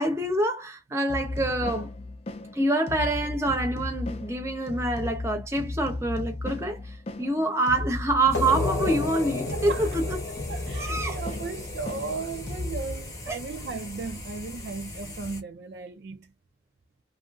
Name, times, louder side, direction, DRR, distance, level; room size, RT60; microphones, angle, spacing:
voice 1, 0.0-1.9 2.5-6.8 7.2-10.2 10.8-11.1 13.3-13.4, right 1 dB, 15° right, 0.7 m, -26 dB
sound 1, 1.1-13.0, left 2 dB, 35° left, 0.4 m, -35 dB
sound 2, 8.3-13.7, left 2 dB, 85° left, 0.7 m, -33 dB
sound 3, 8.3-15.4, left 1 dB, 20° left, 0.8 m, -40 dB
voice 2, 9.5-9.9 10.5-16.3, right 4 dB, 70° right, 0.4 m, -36 dB
2.7 x 2.4 x 2.3 m
head